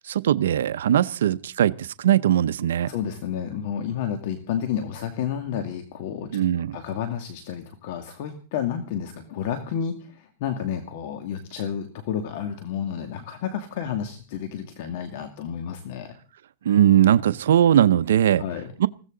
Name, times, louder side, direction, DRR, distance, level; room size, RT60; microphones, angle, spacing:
voice 1, 0.0-2.9 6.3-6.8 16.6-18.4 18.8-18.9, right 10 dB, 90° right, 14 dB, 0.7 m, -20 dB
voice 2, 2.9-6.3 6.7-16.1 18.4-18.7, left 8 dB, 60° left, 7 dB, 2.2 m, -31 dB
20.5 x 16.0 x 3.9 m, 0.37 s
supercardioid pair, 145°, 0 cm